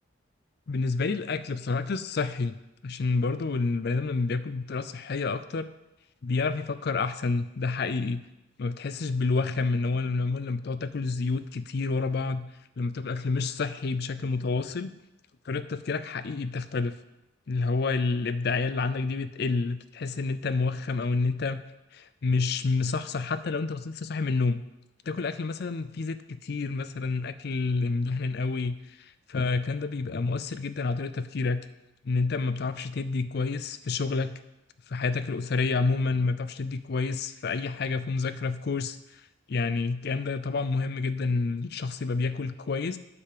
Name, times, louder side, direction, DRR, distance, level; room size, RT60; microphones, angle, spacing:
voice 1, 0.7-2.6 2.8-5.7 6.2-8.2 8.6-12.5 12.8-14.9 15.5-17.0 17.5-21.6 21.9-24.6 25.1-31.6 32.0-34.4 34.9-39.0 39.5-43.0, left 4 dB, 55° left, 13 dB, 0.5 m, -29 dB
8.3 x 5.7 x 6.7 m, 0.92 s
head